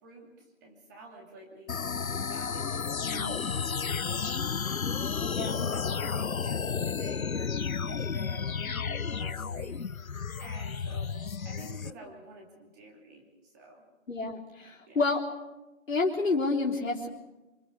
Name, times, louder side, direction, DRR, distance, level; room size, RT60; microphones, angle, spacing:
voice 1, 0.0-11.1 11.4-13.9 14.9-15.0, right 1 dB, 15° right, 0 dB, 2.8 m, -49 dB
sound 1, 1.7-11.9, left 6 dB, 85° left, 0.9 m, -32 dB
voice 2, 5.3-5.6 14.1-15.2 15.9-17.1, left 3 dB, 70° left, -4 dB, 3.8 m, -29 dB
26.0 x 25.5 x 6.7 m, 1.1 s
figure-of-eight pair, 165°, 41 cm